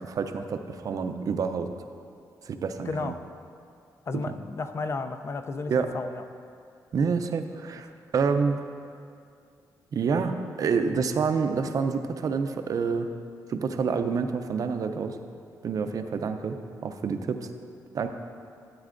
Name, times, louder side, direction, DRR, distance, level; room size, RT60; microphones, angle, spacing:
voice 1, 0.0-1.7 2.5-3.1 4.1-4.2 5.7-5.9 6.9-8.6 9.9-13.1 13.5-15.2 15.6-16.6 16.8-17.5 17.9-18.1, right 5 dB, 55° right, 7 dB, 0.5 m, -28 dB
voice 2, 2.8-3.2 4.1-6.2, left 3 dB, 40° left, 9 dB, 0.4 m, -33 dB
13.0 x 8.3 x 2.5 m, 2.4 s
wide cardioid pair, 135°, 7 cm